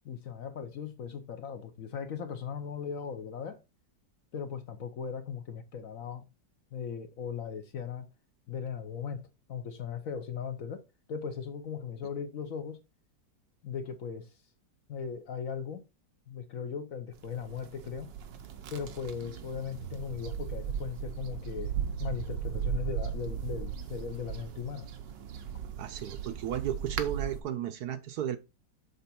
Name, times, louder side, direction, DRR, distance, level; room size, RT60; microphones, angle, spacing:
voice 1, 0.0-3.6 4.3-6.3 6.7-8.1 8.5-9.2 9.5-10.8 11.1-12.8 13.6-14.3 14.9-15.8 16.3-18.1 18.7-24.9, left 7 dB, 60° left, 1.0 m, -38 dB
sound 1, 17.2-27.4, right 8 dB, 90° right, 1.5 m, -37 dB
voice 2, 25.8-28.4, right 10 dB, 70° right, 1.1 m, -34 dB
6.9 x 4.0 x 4.3 m
omnidirectional pair, 1.9 m